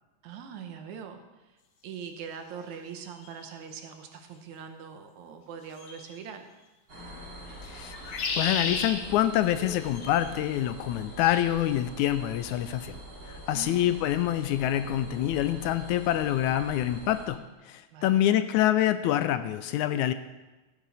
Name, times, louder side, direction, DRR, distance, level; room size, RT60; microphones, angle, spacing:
voice 1, 0.2-1.6 1.8-6.5 13.5-13.8 17.9-18.2, right 7 dB, 75° right, 6 dB, 2.3 m, -42 dB
sound 1, 3.2-3.3 5.8-6.2 7.9-8.9 9.9-10.3, left 4 dB, 55° left, 1.7 m, -32 dB
sound 2, 6.9-17.3, right 1 dB, 35° right, 3.9 m, -44 dB
voice 2, 7.6-7.9 8.4-13.0 13.3-17.4 17.7-20.1, left 12 dB, 80° left, 12 dB, 1.9 m, -26 dB
15.0 x 9.1 x 4.2 m, 1.1 s
omnidirectional pair, 3.5 m